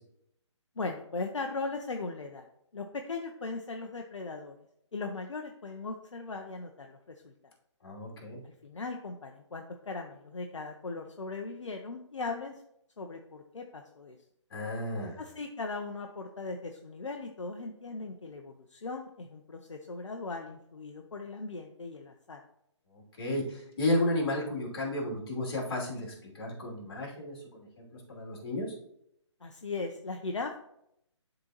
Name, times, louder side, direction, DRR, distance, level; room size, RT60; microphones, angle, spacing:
voice 1, 0.8-2.5 2.7-4.6 4.9-7.3 8.4-12.5 13.0-14.2 15.2-22.4 29.4-30.6, left 3 dB, 75° left, 4 dB, 0.8 m, -38 dB
voice 2, 7.8-8.4 14.5-15.2 23.2-28.7, left 1 dB, 50° left, -2 dB, 2.9 m, -33 dB
11.5 x 3.9 x 3.0 m, 0.76 s
figure-of-eight pair, 145°, 16 cm